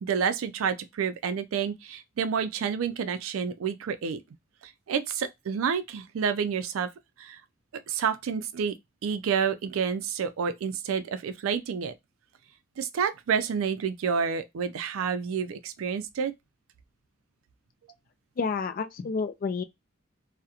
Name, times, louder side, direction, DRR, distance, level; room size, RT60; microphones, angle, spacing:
voice 1, 0.0-4.2 4.9-6.9 7.2-7.4 7.9-8.8 9.0-11.9 12.8-16.3, right 6 dB, 90° right, 0.4 m, -29 dB
voice 2, 18.4-19.6, left 5 dB, 45° left, 0.3 m, -29 dB
2.7 x 2.1 x 2.3 m
head